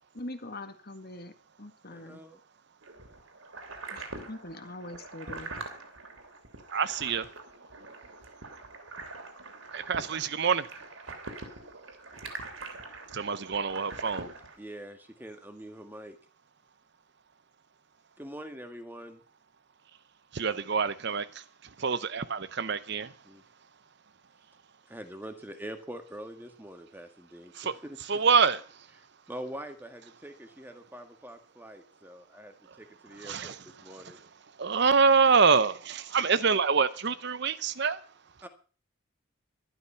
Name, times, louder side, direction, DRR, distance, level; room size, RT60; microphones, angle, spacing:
voice 1, 0.1-2.2 3.9-5.5, left 1 dB, 50° left, 1.8 m, -43 dB
voice 2, 1.9-2.4 14.6-16.2 18.2-19.2 23.2-23.4 24.9-28.0 29.0-34.2 38.4-38.5, right 1 dB, 10° right, 1.8 m, -44 dB
sound 1, 2.8-14.6, right 3 dB, 80° right, 3.0 m, -44 dB
voice 3, 6.7-7.3 9.7-10.6 13.1-14.3 20.3-21.3 21.8-23.1 27.5-27.8 28.1-28.6 33.2-33.6 34.6-38.0, right 5 dB, 55° right, 0.7 m, -25 dB
12.5 x 12.0 x 5.7 m
head